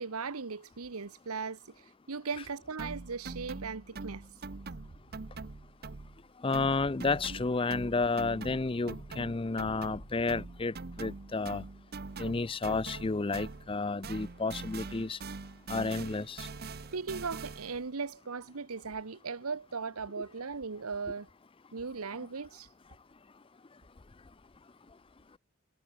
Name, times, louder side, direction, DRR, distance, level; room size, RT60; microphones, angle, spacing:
voice 1, 0.0-4.2 16.9-21.3 21.7-22.7, right 5 dB, 85° right, 1.0 m, -38 dB
sound 1, 2.8-6.3 6.5-13.8 14.0-17.8, right 3 dB, 45° right, 0.8 m, -43 dB
voice 2, 6.4-11.6 12.2-15.2 15.7-16.5, left 3 dB, 25° left, 0.5 m, -31 dB
head